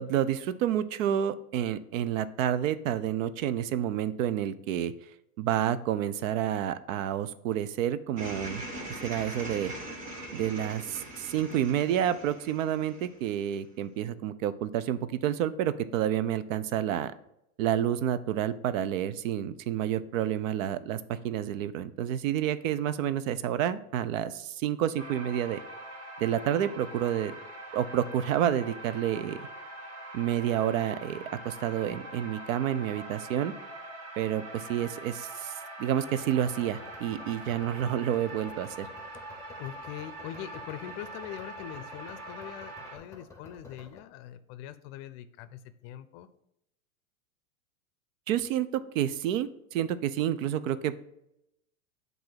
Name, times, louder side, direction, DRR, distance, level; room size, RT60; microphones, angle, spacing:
voice 1, 0.0-4.9 5.4-8.6 9.0-9.7 10.3-17.1 17.6-25.6 26.2-27.4 27.7-29.5 30.1-33.5 34.2-35.5 35.8-38.9 48.3-51.0, right 10 dB, 65° right, 14 dB, 0.6 m, -29 dB
sound 1, 8.2-13.6, right 1 dB, 20° right, 1.3 m, -41 dB
sound 2, 25.0-43.0, right 1 dB, 35° right, 1.7 m, -43 dB
sound 3, 36.4-44.0, left 3 dB, 5° left, 0.7 m, -52 dB
voice 2, 39.6-46.3, left 12 dB, 45° left, 12 dB, 0.5 m, -42 dB
7.6 x 2.6 x 5.7 m, 0.82 s
hypercardioid pair, 110°, 42 cm